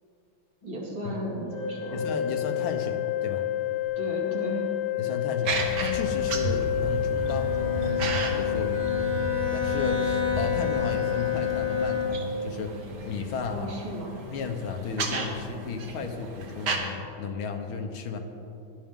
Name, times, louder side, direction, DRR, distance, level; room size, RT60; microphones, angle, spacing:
voice 1, 0.6-2.0 4.0-4.7 13.5-14.2, equal, 75° right, -3 dB, 3.2 m, -34 dB
Organ, 1.5-12.5, left 11 dB, 65° left, 4.0 m, -29 dB
voice 2, 1.9-3.5 5.0-9.0 9.5-13.7 14.3-18.2, left 5 dB, 80° left, 5 dB, 1.9 m, -34 dB
sound 1, 5.4-16.8, right 2 dB, 60° right, 1.7 m, -34 dB
Bowed string instrument, 7.2-12.5, left 3 dB, 50° left, 3.2 m, -34 dB
16.5 x 11.5 x 3.7 m, 2.8 s
omnidirectional pair, 2.2 m